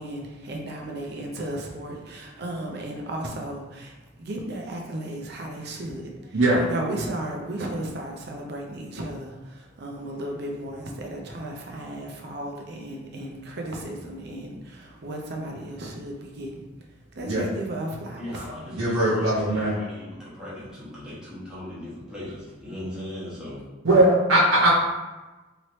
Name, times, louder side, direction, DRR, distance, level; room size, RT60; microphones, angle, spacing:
voice 1, 0.0-3.9 4.2-6.3 6.6-16.5 17.2-18.5, right 1 dB, 55° right, 0 dB, 0.6 m, -34 dB
voice 2, 18.2-23.6 24.5-24.7, left 1 dB, 5° right, -10 dB, 1.1 m, -38 dB
voice 3, 18.7-19.7 23.8-24.7, right 1 dB, 85° right, -9 dB, 0.9 m, -20 dB
3.1 x 2.9 x 2.9 m, 1.1 s
head